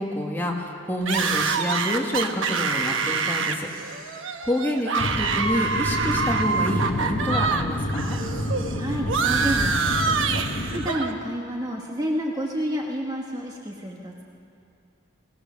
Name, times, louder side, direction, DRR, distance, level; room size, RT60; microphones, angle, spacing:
voice 1, 0.0-8.2, left 1 dB, 10° left, -1 dB, 1.8 m, -28 dB
sound 1, 1.1-7.6 7.9-11.1, right 5 dB, 65° right, 1.1 m, -26 dB
sound 2, 5.0-10.9, left 1 dB, 40° left, 1.2 m, -29 dB
voice 2, 8.8-14.3, equal, 20° right, -1 dB, 1.3 m, -30 dB
22.0 x 17.5 x 6.8 m, 2.5 s
head